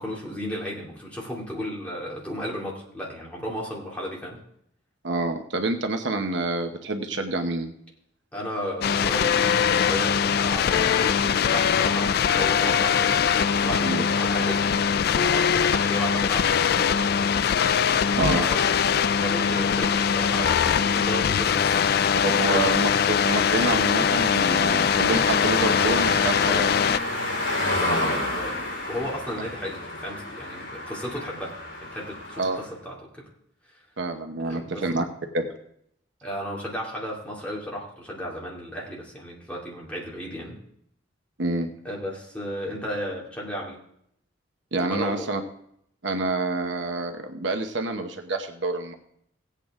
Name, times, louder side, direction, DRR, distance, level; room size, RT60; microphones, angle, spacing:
voice 1, 0.0-4.4 8.3-13.3 13.5-17.0 18.0-18.8 19.2-21.9 22.4-22.6 27.7-33.3 34.4-35.0 36.2-40.6 41.8-43.8 44.8-45.3, equal, 5° left, -4 dB, 2.5 m, -34 dB
voice 2, 5.0-7.7 13.8-14.0 18.2-18.5 22.2-26.7 32.4-32.6 34.0-35.0 35.3-35.6 41.4-41.7 44.7-45.4 46.0-48.9, right 2 dB, 65° right, 5 dB, 0.9 m, -27 dB
sound 1, 8.8-27.0, left 7 dB, 55° left, 0.3 m, -22 dB
sound 2, 19.7-32.7, left 2 dB, 70° left, 4.5 m, -32 dB
16.5 x 8.4 x 3.6 m, 0.72 s
head